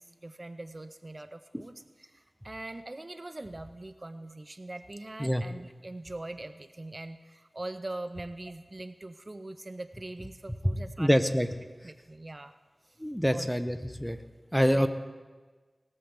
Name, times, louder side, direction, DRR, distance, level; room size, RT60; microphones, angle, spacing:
voice 1, 0.0-11.1 11.8-12.6 12.8-13.0 13.3-13.5 14.7-14.9, right 2 dB, 35° right, 10 dB, 0.5 m, -42 dB
voice 2, 11.0-11.5 13.0-14.2 14.5-14.9, equal, ahead, 10 dB, 0.7 m, -25 dB
18.5 x 14.0 x 3.4 m, 1.4 s
wide cardioid pair, 60°, 0 cm